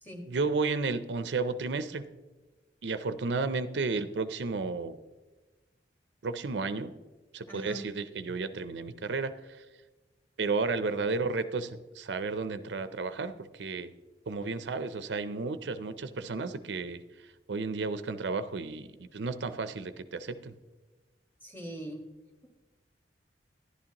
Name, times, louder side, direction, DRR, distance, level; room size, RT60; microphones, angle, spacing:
voice 1, 0.3-2.0 2.8-5.0 6.2-6.9 7.3-9.3 10.4-13.3 13.6-13.9 14.3-17.0 17.5-18.9 19.1-20.5, right 4 dB, 80° right, 12 dB, 0.5 m, -32 dB
voice 2, 7.5-7.9 21.4-22.1, right 1 dB, 10° left, 2 dB, 1.5 m, -41 dB
11.0 x 11.0 x 2.9 m, 1.2 s
head